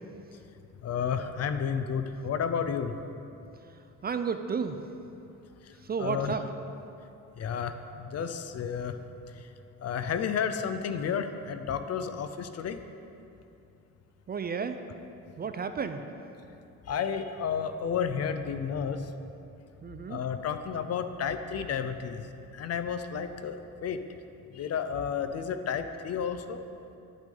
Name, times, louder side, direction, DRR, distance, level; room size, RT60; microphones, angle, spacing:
voice 1, 0.8-3.0 6.0-6.3 7.4-9.0 9.8-12.8 16.9-19.0 20.1-22.2 22.5-24.0 24.5-26.6, left 7 dB, 50° left, 9 dB, 0.5 m, -31 dB
voice 2, 4.0-4.8 5.8-6.5 14.3-14.8 15.4-16.1 19.8-20.2, right 6 dB, 30° right, 8 dB, 0.4 m, -32 dB
10.5 x 6.1 x 3.8 m, 2.7 s
cardioid pair, 90°, 32 cm